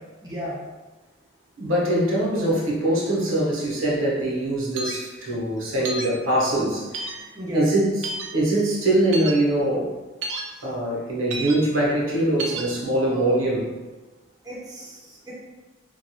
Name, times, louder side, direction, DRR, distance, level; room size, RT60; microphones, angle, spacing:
voice 1, 0.2-0.6 7.3-7.7 13.0-13.4 14.4-15.3, equal, 20° right, -6 dB, 0.6 m, -34 dB
voice 2, 1.6-7.2 7.5-7.9 8.3-9.9 10.6-13.7, right 1 dB, 90° right, -4 dB, 0.8 m, -23 dB
sound 1, 4.8-5.0 5.8-6.1 6.9-7.2 8.0-8.3 9.1-9.3 10.2-10.4 11.3-11.5 12.4-12.6, right 2 dB, 65° right, 0.4 m, -30 dB
3.0 x 2.3 x 2.7 m, 1.2 s
head